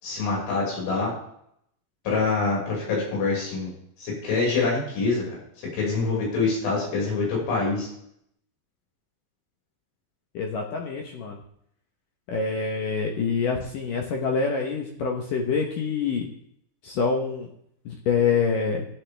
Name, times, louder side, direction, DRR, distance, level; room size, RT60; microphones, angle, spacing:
voice 1, 0.0-1.1 2.1-3.7 4.0-5.2 5.7-7.9, left 4 dB, 85° left, -5 dB, 8.1 m, -25 dB
voice 2, 10.3-11.4 12.3-16.3 16.8-17.5 17.9-18.9, left 5 dB, 70° left, 1 dB, 2.1 m, -26 dB
15.0 x 10.0 x 3.4 m, 0.71 s
omnidirectional pair, 5.3 m